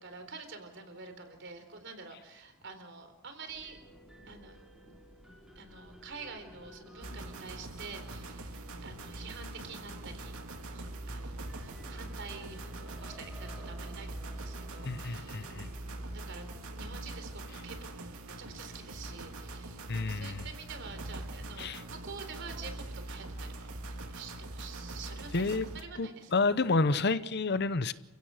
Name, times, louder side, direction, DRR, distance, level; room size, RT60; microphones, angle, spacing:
voice 1, 0.0-3.8 4.3-4.6 5.6-8.5 8.8-15.5 15.8-26.3, right 4 dB, 55° right, 7 dB, 3.9 m, -48 dB
sound 1, 3.5-20.0, right 1 dB, 5° right, 3.2 m, -56 dB
sound 2, 7.0-25.8, right 2 dB, 85° right, 2.3 m, -43 dB
voice 2, 14.8-15.7 19.9-20.4 21.6-21.8 25.3-25.7 26.0-27.9, left 3 dB, 50° left, 14 dB, 0.8 m, -29 dB
30.0 x 16.0 x 6.5 m, 1.0 s
head